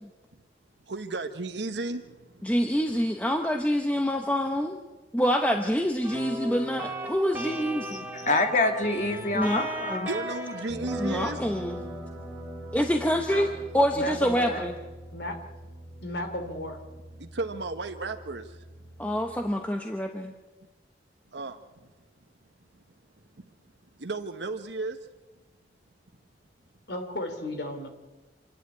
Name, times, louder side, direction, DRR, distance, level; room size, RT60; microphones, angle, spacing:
voice 1, 0.9-2.5 10.1-11.4 13.3-13.6 17.2-18.6 21.3-21.6 24.0-25.0, right 3 dB, 80° right, 1.2 m, -34 dB
voice 2, 2.4-4.8 5.1-8.0 9.3-9.6 9.9-10.1 11.0-11.8 12.7-14.7 19.0-20.3, equal, 10° left, 1.0 m, -26 dB
sound 1, 6.0-19.5, equal, 10° right, 3.1 m, -39 dB
voice 3, 7.9-10.2, left 2 dB, 45° left, 2.2 m, -26 dB
voice 4, 13.9-14.7 15.1-15.4 16.0-16.8 26.9-27.9, left 1 dB, 70° left, 3.0 m, -34 dB
26.5 x 11.0 x 9.8 m
head